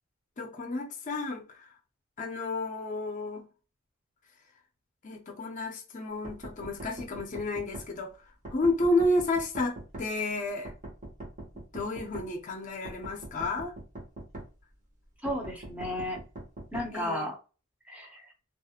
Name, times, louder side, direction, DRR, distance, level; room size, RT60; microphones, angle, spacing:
voice 1, 0.4-1.7 2.2-3.5 5.0-8.1 8.5-10.7 11.6-13.7 16.9-17.3, left 2 dB, 35° left, 0.5 m, -31 dB
sound 1, 6.3-7.9 8.5-10.1 10.7-12.3 12.9-14.5 15.3-16.9, right 1 dB, 35° right, 0.8 m, -42 dB
voice 2, 15.2-16.2 16.7-17.4 17.9-18.3, left 1 dB, 5° right, 0.6 m, -33 dB
2.3 x 2.0 x 2.8 m
head